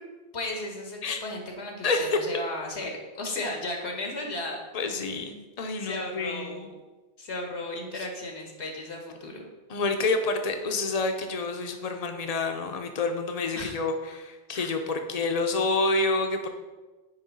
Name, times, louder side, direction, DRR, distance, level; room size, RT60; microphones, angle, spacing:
voice 1, 0.3-4.6 5.8-6.7 7.2-9.5 13.5-13.8 14.5-14.7, left 2 dB, 85° left, 2 dB, 1.6 m, -35 dB
voice 2, 1.8-2.2 4.7-6.7 7.9-8.1 9.7-16.5, left 3 dB, 40° left, 5 dB, 0.8 m, -28 dB
9.6 x 3.3 x 5.3 m, 1.2 s
omnidirectional pair, 1.1 m